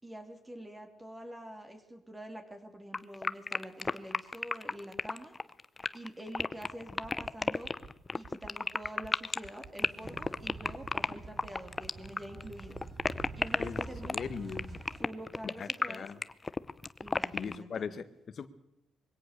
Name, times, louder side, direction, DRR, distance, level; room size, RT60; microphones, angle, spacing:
voice 1, 0.0-5.3 5.9-7.7 8.1-12.8 13.4-14.3 15.0-16.1 17.0-17.8, right 1 dB, 15° right, 3.1 m, -46 dB
sound 1, 2.9-17.6, left 3 dB, 25° left, 0.8 m, -33 dB
sound 2, 6.7-6.8 7.0-7.3 7.6-7.9 8.2-8.5 8.8-9.1 9.4-9.7 10.0-10.3 10.6-10.9 11.2-11.5 11.8-12.1 12.4-12.7 13.0-13.3, right 5 dB, 65° right, 2.2 m, -51 dB
sound 3, 9.8-15.0, right 3 dB, 45° right, 5.9 m, -47 dB
voice 2, 14.1-14.8 15.6-16.2 17.3-18.5, left 6 dB, 50° left, 1.5 m, -39 dB
22.5 x 17.0 x 6.7 m
cardioid pair, 90°, 0 cm